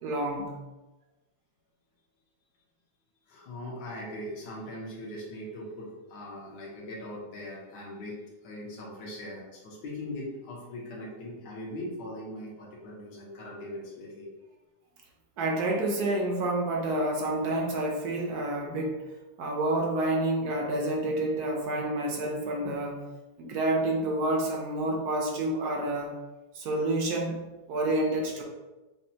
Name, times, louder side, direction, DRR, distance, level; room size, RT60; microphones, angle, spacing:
voice 1, 0.0-0.6 15.4-19.1 19.4-23.0 23.4-26.1 26.5-28.4, right 1 dB, 65° right, 0 dB, 1.1 m, -29 dB
voice 2, 3.3-14.3 27.9-28.2, left 1 dB, 70° left, -5 dB, 1.5 m, -40 dB
5.2 x 2.2 x 2.8 m, 1.1 s
omnidirectional pair, 2.0 m